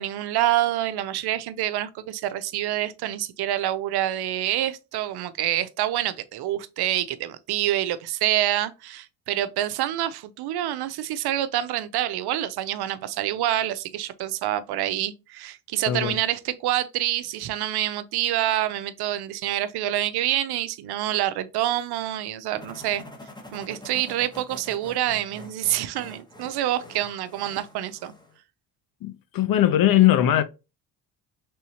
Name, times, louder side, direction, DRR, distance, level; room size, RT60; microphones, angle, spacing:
voice 1, 0.0-23.0 23.5-28.1, right 13 dB, 60° right, 0.5 m, -27 dB
voice 2, 15.9-16.2 29.0-30.4, left 12 dB, 50° left, 0.6 m, -20 dB
sound 1, 22.6-28.4, left 1 dB, 10° left, 0.9 m, -45 dB
3.4 x 2.7 x 2.7 m
supercardioid pair, 70°, 45 cm